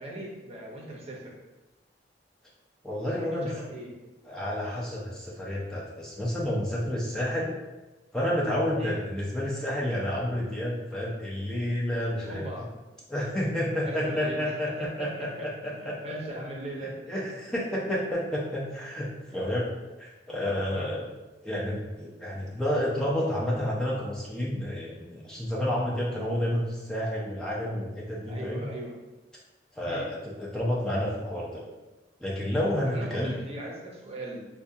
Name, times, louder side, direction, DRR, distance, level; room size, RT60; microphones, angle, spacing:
voice 1, 0.0-1.3 3.0-3.9 8.8-8.9 12.2-12.7 13.8-17.1 17.9-18.1 19.3-19.4 20.7-20.9 28.3-28.9 29.9-30.0 32.9-34.4, right 1 dB, 35° right, -2 dB, 0.7 m, -39 dB
voice 2, 2.8-3.5 4.2-7.5 8.1-12.5 13.1-16.0 17.1-19.7 20.0-21.0 21.4-28.7 29.7-31.7 32.2-33.3, left 1 dB, 5° left, -6 dB, 0.5 m, -30 dB
4.5 x 2.2 x 2.7 m, 1.1 s
head